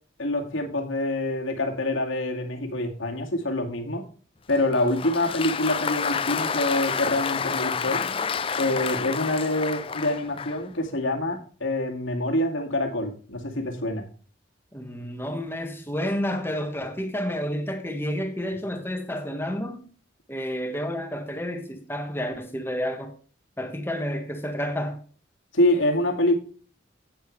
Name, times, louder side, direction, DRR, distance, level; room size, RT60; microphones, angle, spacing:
voice 1, 0.2-4.1 4.5-8.0 8.6-14.1 25.5-26.4, left 1 dB, 85° left, 2.2 m, -26 dB
Applause, 4.5-10.7, left 6 dB, 30° left, 0.4 m, -29 dB
voice 2, 14.7-19.9 20.3-23.1 23.6-25.0, equal, 10° left, 1.4 m, -30 dB
10.5 x 8.9 x 3.3 m
head